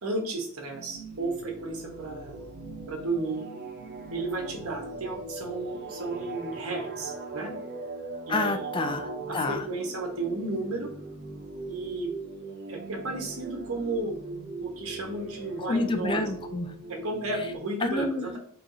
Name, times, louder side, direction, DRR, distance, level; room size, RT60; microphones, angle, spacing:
voice 1, 0.0-2.3 2.9-3.4 4.1-7.5 8.3-8.7 9.3-10.9 11.7-12.1 12.7-14.1 14.6-16.3 16.9-18.4, right 2 dB, 85° right, 2 dB, 1.0 m, -33 dB
sound 1, 0.7-17.6, right 2 dB, 50° right, 0.7 m, -40 dB
voice 2, 8.3-9.6 15.6-16.7 17.8-18.4, left 2 dB, 20° left, 8 dB, 0.3 m, -29 dB
4.5 x 3.0 x 2.6 m, 0.64 s
head